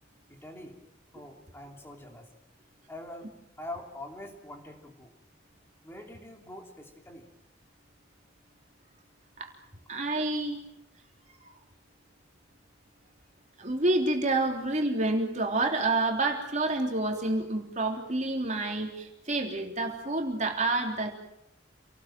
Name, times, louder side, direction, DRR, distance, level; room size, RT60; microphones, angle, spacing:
voice 1, 0.3-0.8 1.1-2.3 2.9-3.3 3.6-5.1 5.8-7.3, left 1 dB, 15° left, 2 dB, 3.0 m, -44 dB
voice 2, 9.9-10.6 13.6-21.1, right 2 dB, 40° right, 2 dB, 3.4 m, -28 dB
28.0 x 19.0 x 7.7 m, 0.82 s
head